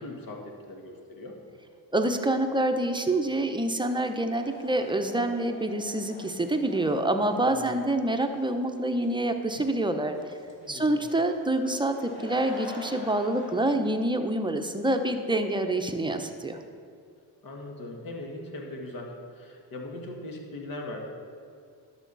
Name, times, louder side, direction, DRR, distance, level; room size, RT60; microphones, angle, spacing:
voice 1, 0.0-1.4 7.4-7.8 10.6-11.0 17.4-21.0, left 2 dB, 50° left, 1 dB, 1.9 m, -40 dB
voice 2, 1.9-10.2 10.7-16.6, right 1 dB, 10° right, 6 dB, 0.9 m, -27 dB
sound 1, 4.4-13.7, left 1 dB, 25° left, 2.3 m, -46 dB
11.5 x 7.3 x 4.1 m, 2.3 s
cardioid pair, 80°, 42 cm